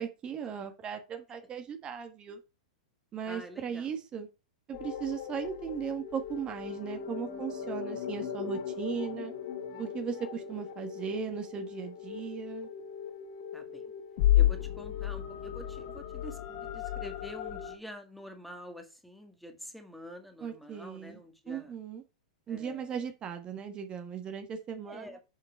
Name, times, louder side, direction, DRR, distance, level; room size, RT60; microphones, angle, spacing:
voice 1, 0.0-2.4 3.1-4.3 4.7-9.3 9.8-12.7 20.4-21.2 21.5-22.0 22.5-25.2, right 7 dB, 25° right, 1.4 m, -37 dB
voice 2, 3.3-4.0 9.7-10.1 13.5-13.8 14.3-21.7 22.5-23.0 24.8-25.2, equal, ahead, 1.8 m, -47 dB
sound 1, 4.7-17.8, left 11 dB, 50° left, 1.9 m, -34 dB
7.0 x 5.8 x 4.4 m
figure-of-eight pair, 100°, 4 cm